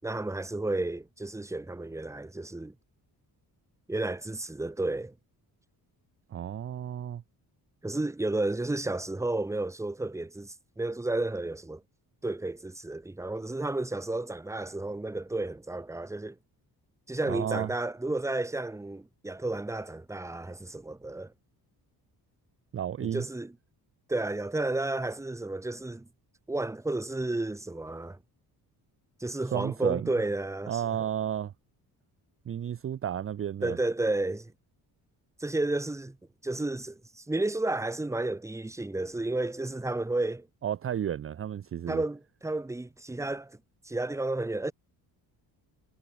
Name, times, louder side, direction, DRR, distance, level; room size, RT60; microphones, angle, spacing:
voice 1, 0.0-2.7 3.9-5.1 7.8-11.8 12.2-16.4 17.1-21.3 23.0-23.5 24.1-26.1 26.5-28.2 29.2-30.8 33.6-34.5 35.4-36.2 36.4-40.5 41.9-43.6 43.8-44.7, right 2 dB, 5° right, 1.3 m, -32 dB
voice 2, 6.3-7.2 17.2-17.7 22.7-23.2 29.5-30.1 30.7-31.5 32.5-33.8 40.6-42.0, right 10 dB, 35° right, 0.6 m, -32 dB
cardioid pair, 150°, 39 cm